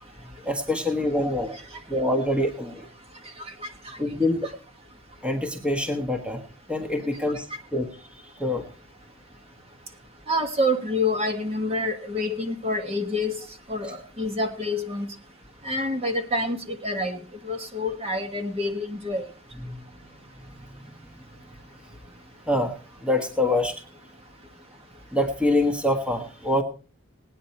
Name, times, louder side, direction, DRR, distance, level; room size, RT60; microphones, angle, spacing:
voice 1, 0.4-1.5 1.9-2.9 4.0-4.5 5.2-6.4 6.7-7.4 7.7-7.9 8.4-8.6 19.6-19.8 22.5-22.7 23.0-23.8 25.1-26.6, left 1 dB, 5° right, 5 dB, 1.3 m, -25 dB
voice 2, 3.4-4.0 10.3-15.1 15.6-19.3, left 1 dB, 30° right, 5 dB, 1.4 m, -28 dB
19.0 x 9.5 x 4.3 m, 0.36 s
head